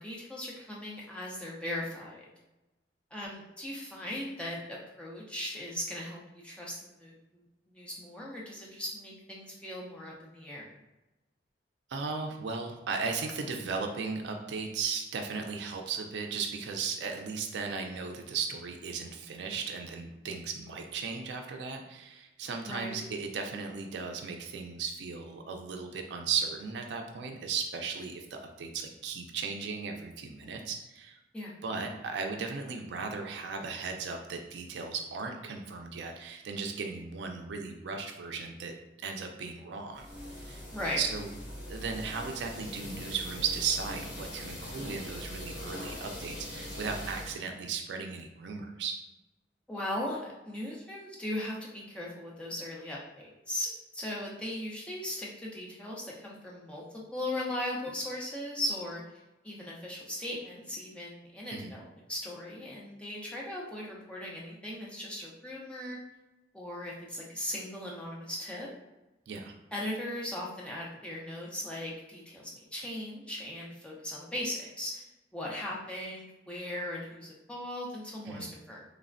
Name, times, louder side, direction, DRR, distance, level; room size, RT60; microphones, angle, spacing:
voice 1, 0.0-2.2 3.1-10.7 22.7-23.0 31.3-31.5 40.7-41.0 49.7-56.8 57.1-66.0 66.5-68.7 69.7-75.0 75.3-78.8, left 1 dB, 5° left, -4 dB, 0.5 m, -38 dB
voice 2, 11.9-31.2 31.6-38.7 39.0-40.1 40.4-40.6 41.0-41.3 41.7-48.9 61.5-61.7 69.3-69.5 78.3-78.5, right 5 dB, 70° right, 3 dB, 0.4 m, -36 dB
sound 1, 39.9-47.4, left 1 dB, 75° left, 0.9 m, -42 dB
3.2 x 2.0 x 2.4 m, 1.0 s
head